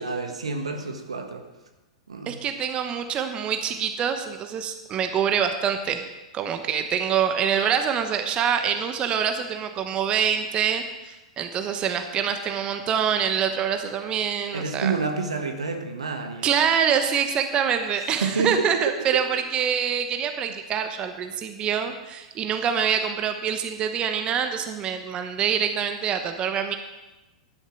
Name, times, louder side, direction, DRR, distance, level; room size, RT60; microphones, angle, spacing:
voice 1, 0.0-1.4 2.1-2.4 14.5-16.5 18.2-18.9, right 4 dB, 80° right, 5 dB, 1.4 m, -28 dB
voice 2, 2.3-6.0 6.3-15.0 16.4-26.8, right 8 dB, 30° right, 7 dB, 1.0 m, -25 dB
11.5 x 7.2 x 6.2 m, 1.0 s
figure-of-eight pair, 100°, 3 cm